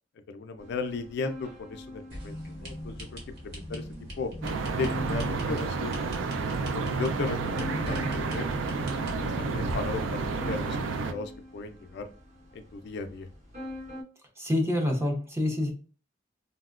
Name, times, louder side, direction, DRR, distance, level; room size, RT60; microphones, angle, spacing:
voice 1, 0.3-3.9 4.2-4.3 4.7-6.0 6.5-8.5 8.9-12.1 12.5-13.3, left 4 dB, 60° left, 7 dB, 0.3 m, -36 dB
sound 1, 0.6-14.0, left 1 dB, 40° right, 1.0 m, -45 dB
sound 2, 2.1-10.0, equal, 60° right, 1.2 m, -40 dB
sound 3, 4.4-11.1, right 4 dB, 80° right, 0.4 m, -30 dB
voice 2, 14.4-15.7, left 1 dB, 15° right, 1 dB, 0.6 m, -27 dB
3.8 x 2.1 x 2.3 m, 0.38 s
head